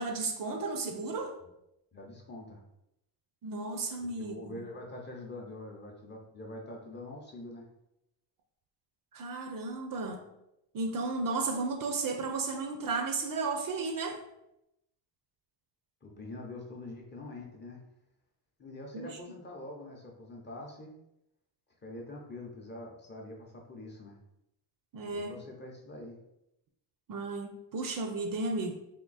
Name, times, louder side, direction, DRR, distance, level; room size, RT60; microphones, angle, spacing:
voice 1, 0.0-1.3 3.4-4.6 9.1-10.2 10.7-14.2 18.9-19.2 24.9-25.4 27.1-28.7, right 3 dB, 50° right, 4 dB, 0.5 m, -34 dB
voice 2, 1.9-2.6 4.0-7.7 16.0-17.8 18.6-21.0 21.8-24.2 25.1-26.2, left 2 dB, 25° left, -1 dB, 0.6 m, -45 dB
3.6 x 2.7 x 4.0 m, 0.85 s
cardioid pair, 165°, 44 cm